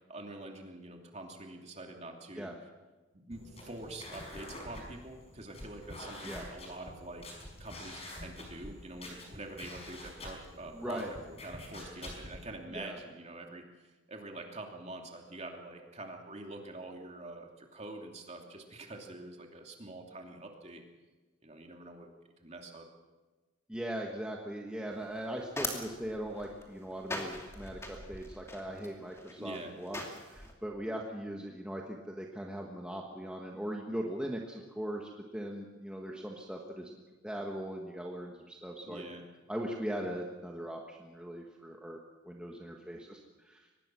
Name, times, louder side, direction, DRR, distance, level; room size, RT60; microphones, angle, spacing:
voice 1, 0.1-2.5 3.1-7.2 7.6-20.8 21.4-22.1 22.4-22.9 29.4-29.8 38.8-39.3, right 2 dB, 30° right, 2 dB, 2.8 m, -45 dB
sound 1, 3.3-12.5, left 1 dB, 30° left, 5.5 m, -47 dB
voice 2, 10.7-11.1 12.7-13.0 23.7-37.0 37.2-39.0 39.5-42.0 42.3-43.2 43.4-43.6, right 1 dB, 5° right, 0 dB, 1.5 m, -40 dB
sound 2, 24.9-30.5, left 2 dB, 15° left, 2.7 m, -42 dB
24.0 x 19.5 x 6.3 m, 1.2 s
head